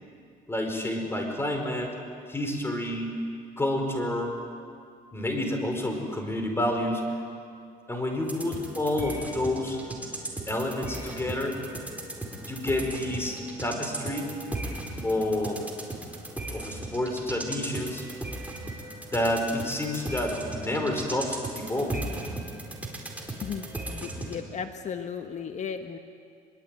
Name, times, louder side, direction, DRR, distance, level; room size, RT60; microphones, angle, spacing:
voice 1, 0.5-1.9 2.3-3.2 3.6-4.4 5.1-7.1 7.9-9.8 10.5-11.6 12.4-14.3 15.0-15.7 16.5-18.0 19.1-22.1, left 1 dB, 15° left, 3 dB, 5.1 m, -29 dB
sound 1, 8.2-24.4, right 1 dB, 10° right, 4.5 m, -37 dB
voice 2, 23.4-26.0, left 7 dB, 45° left, 7 dB, 1.3 m, -35 dB
23.5 x 23.0 x 9.3 m, 2.3 s
cardioid pair, 110°, 17 cm